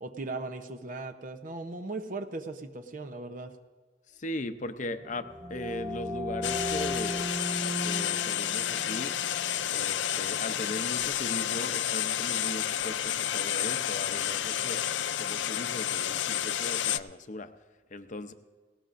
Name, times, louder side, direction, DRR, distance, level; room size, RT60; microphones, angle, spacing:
voice 1, 0.0-3.5, right 2 dB, 50° right, 6 dB, 0.8 m, -38 dB
voice 2, 4.1-7.3 7.8-9.1 9.7-14.8 15.2-17.5 17.9-18.3, left 2 dB, 45° left, 10 dB, 0.7 m, -38 dB
sound 1, 4.9-10.5, equal, 15° right, 0.8 m, -37 dB
sound 2, 6.4-17.0, left 11 dB, 90° left, 0.4 m, -30 dB
18.5 x 18.0 x 2.6 m, 1.4 s
head